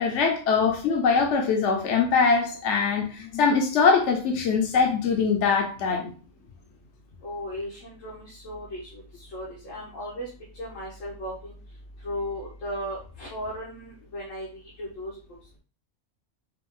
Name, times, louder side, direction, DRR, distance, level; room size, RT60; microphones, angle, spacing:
voice 1, 0.0-6.1, left 5 dB, 70° left, 2 dB, 1.0 m, -22 dB
voice 2, 7.2-10.3 10.5-11.6 12.0-15.1, equal, 90° left, -4 dB, 1.6 m, -36 dB
5.2 x 2.5 x 3.6 m, 0.35 s
omnidirectional pair, 1.3 m